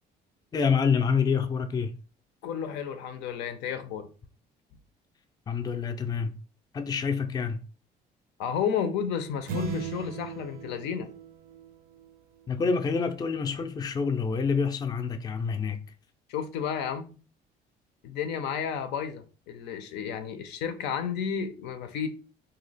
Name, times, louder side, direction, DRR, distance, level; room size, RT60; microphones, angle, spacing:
voice 1, 0.5-2.0 5.5-6.3 6.7-7.6 12.5-15.8, left 5 dB, 25° left, 0.4 m, -27 dB
voice 2, 2.4-4.1 8.4-11.1 16.3-17.1 18.0-22.1, left 7 dB, 90° left, 0.5 m, -32 dB
sound 1, 9.5-12.1, right 6 dB, 65° right, 0.5 m, -37 dB
2.7 x 2.1 x 3.9 m
cardioid pair, 110°, 17 cm